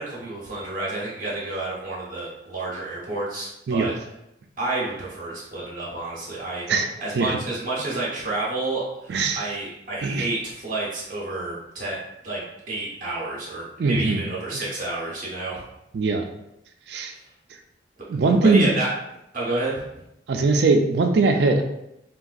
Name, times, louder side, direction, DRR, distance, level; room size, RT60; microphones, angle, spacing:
voice 1, 0.0-3.9 4.6-6.7 7.0-12.0 12.2-15.6 18.4-18.9 19.3-19.8, right 2 dB, 45° right, -5 dB, 0.7 m, -29 dB
voice 2, 6.7-7.4 9.1-9.4 10.0-10.3 13.8-14.6 15.9-16.3 16.9-17.1 18.1-18.7 20.3-21.6, right 3 dB, 60° right, 5 dB, 0.3 m, -21 dB
3.6 x 2.2 x 2.4 m, 0.85 s
head